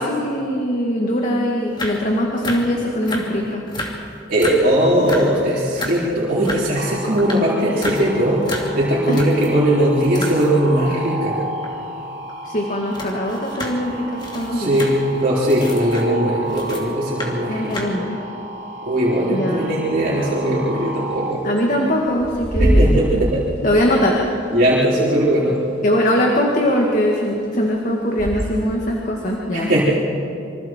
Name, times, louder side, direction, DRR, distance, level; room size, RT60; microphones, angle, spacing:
voice 1, 0.0-3.6 9.1-9.2 12.4-14.8 17.5-18.2 19.3-19.7 21.4-23.0 23.6-24.2 25.8-29.7, equal, 40° left, -1 dB, 2.0 m, -21 dB
sound 1, 1.7-2.1 2.3-3.3 3.7-4.0 4.3-4.7 5.0-5.3 5.7-6.0 6.4-6.7 7.1-9.5 9.9-10.7 11.6-11.8 12.2-12.3 12.5-16.9 17.2-17.4 17.6-17.8, left 1 dB, 25° left, 2.7 m, -32 dB
voice 2, 4.3-11.4 14.5-17.9 18.9-21.4 22.6-23.4 24.5-25.6 29.5-29.8, right 1 dB, 45° right, -8 dB, 4.0 m, -19 dB
sound 2, 6.8-21.3, right 1 dB, 80° right, 2.4 m, -33 dB
Bird / Wind, 20.1-28.8, equal, 30° right, 6.7 m, -25 dB
27.5 x 25.0 x 4.6 m, 2.7 s
head